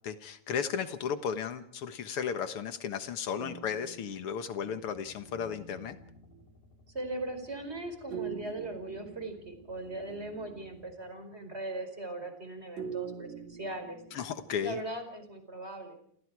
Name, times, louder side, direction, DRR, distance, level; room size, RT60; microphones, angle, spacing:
voice 1, 0.0-6.0 14.1-14.8, left 7 dB, 80° left, 9 dB, 1.2 m, -34 dB
sound 1, 3.4-6.5 8.1-11.0 12.8-14.9, right 8 dB, 50° right, 3.7 m, -45 dB
sound 2, 4.8-10.9, left 3 dB, 60° left, 7.2 m, -60 dB
voice 2, 6.9-14.0 14.6-16.0, right 2 dB, 15° right, 6 dB, 4.7 m, -39 dB
29.0 x 28.5 x 4.8 m, 0.67 s
omnidirectional pair, 4.5 m